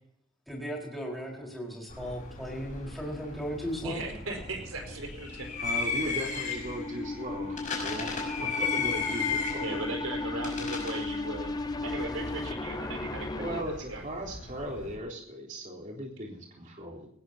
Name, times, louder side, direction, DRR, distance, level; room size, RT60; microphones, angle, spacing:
voice 1, 0.5-4.0, equal, ahead, -3 dB, 4.6 m, -36 dB
sound 1, 1.9-14.9, left 5 dB, 40° left, 5.7 m, -36 dB
voice 2, 3.8-5.5 6.1-6.2 8.4-8.5 9.6-14.0, right 2 dB, 75° right, 4 dB, 4.6 m, -38 dB
sound 2, 4.5-13.6, left 2 dB, 20° left, 0.6 m, -36 dB
voice 3, 5.6-9.6 13.3-17.1, equal, 40° right, -2 dB, 3.9 m, -38 dB
20.5 x 18.5 x 2.9 m, 0.72 s
head